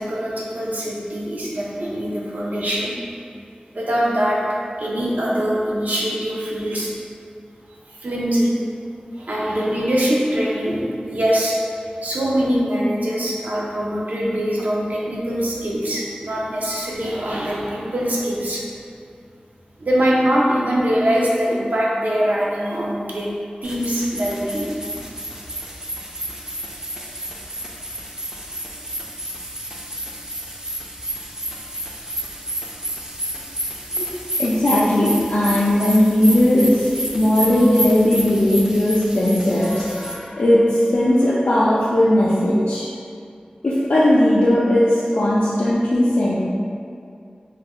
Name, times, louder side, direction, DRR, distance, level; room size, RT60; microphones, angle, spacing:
voice 1, 0.0-3.0 3.7-4.4 4.8-6.9 7.9-8.6 9.1-11.6 12.0-18.6 19.8-23.3 23.6-24.7, equal, 75° right, -6 dB, 0.5 m, -22 dB
sound 1, 23.6-40.1, right 1 dB, 25° right, 0.4 m, -30 dB
voice 2, 34.4-42.9 43.6-46.4, left 1 dB, 80° left, -9 dB, 0.4 m, -17 dB
2.5 x 2.0 x 3.6 m, 2.4 s
wide cardioid pair, 45°, 3 cm